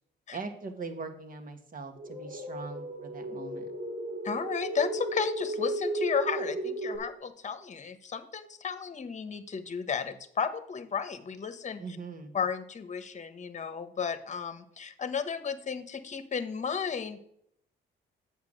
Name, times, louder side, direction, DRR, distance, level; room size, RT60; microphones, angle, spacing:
voice 1, 0.3-3.7 11.8-12.3, right 4 dB, 45° right, 6 dB, 1.7 m, -41 dB
sound 1, 2.0-7.0, right 2 dB, 85° right, 4.0 m, -35 dB
voice 2, 4.2-11.8 12.3-17.2, left 6 dB, 35° left, 11 dB, 1.1 m, -33 dB
8.2 x 7.0 x 6.5 m, 0.71 s
cardioid pair, 90°, 20 cm